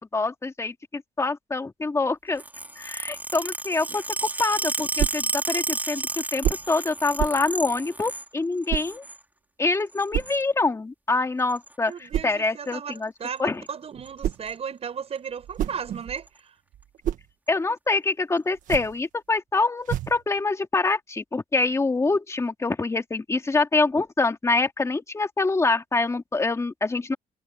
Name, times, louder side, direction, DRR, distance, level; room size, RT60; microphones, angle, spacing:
voice 1, 0.1-2.4 2.8-4.0 4.4-9.0 9.6-13.1 13.4-13.6 17.5-27.2, left 3 dB, 20° left, 2.1 m, -25 dB
sound 1, 2.4-8.3 8.6-9.2 9.9-10.4 11.5-11.7 12.7-13.0 13.3-13.4 13.7-13.8 14.1-14.5 15.1-15.2 16.2-16.3, right 2 dB, 15° right, 3.6 m, -32 dB
sound 2, 5.0-5.3 6.4-6.7 7.2-7.5 8.7-8.9 10.1-10.4 12.1-12.4 13.9-14.5 15.3-16.3 16.7-17.3 18.5-19.0 19.8-20.2, right 11 dB, 80° right, 1.6 m, -29 dB
voice 2, 11.9-16.3, right 7 dB, 50° right, 7.2 m, -35 dB
cardioid pair, 100°, 13 cm